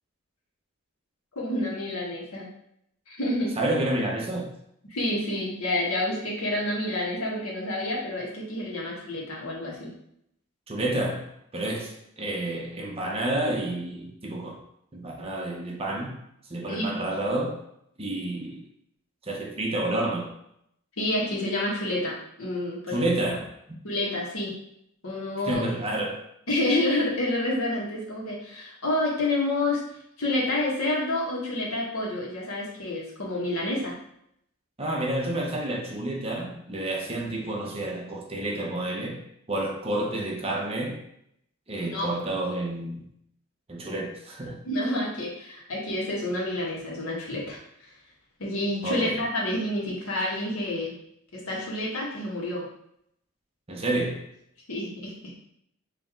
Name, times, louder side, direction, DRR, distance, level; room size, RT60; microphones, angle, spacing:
voice 1, 1.3-2.5 3.1-3.5 4.9-9.9 11.7-11.8 16.7-17.0 21.0-23.1 23.8-24.5 25.0-25.6 26.5-29.8 30.2-33.9 41.8-42.1 44.6-47.6 48.4-50.9 51.3-52.7 54.7-55.1, left 1 dB, 85° left, -4 dB, 1.5 m, -28 dB
voice 2, 3.6-4.5 10.7-14.6 14.9-16.2 16.5-17.6 18.0-18.6 19.2-20.3 22.9-23.5 25.4-26.2 34.8-39.2 39.5-41.0 41.7-43.0 43.7-44.6 48.8-49.2 53.7-54.3, right 1 dB, 30° right, 0 dB, 0.8 m, -29 dB
4.9 x 2.9 x 3.6 m, 0.74 s
head